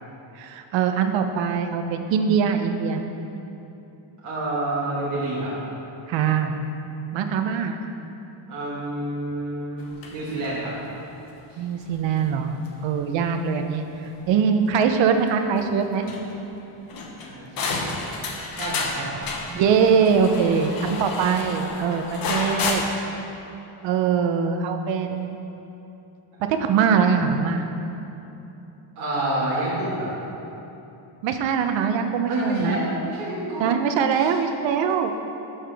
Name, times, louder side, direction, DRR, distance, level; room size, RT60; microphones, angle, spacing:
voice 1, 0.4-3.0 6.1-6.6 7.1-7.8 11.6-13.8 14.3-16.0 19.6-22.8 23.8-25.4 26.5-27.7 31.2-32.8 33.6-35.1, right 6 dB, 60° right, 6 dB, 0.7 m, -22 dB
voice 2, 4.2-5.5 8.5-9.8 10.1-10.7 11.5-11.6 17.2-17.8 18.5-19.2 19.5-19.6 20.3-20.4 29.0-30.1 32.3-33.7 34.1-34.3, right 1 dB, 35° right, -10 dB, 1.8 m, -28 dB
sound 1, 9.8-11.2 11.7-11.9 12.1-12.7 13.5-14.3 14.6-14.8 15.3-15.4 15.6-15.7 16.0-16.6 16.9-22.7, left 3 dB, 45° left, 0.9 m, -31 dB
11.5 x 5.8 x 3.4 m, 3.0 s
cardioid pair, 165°, 50 cm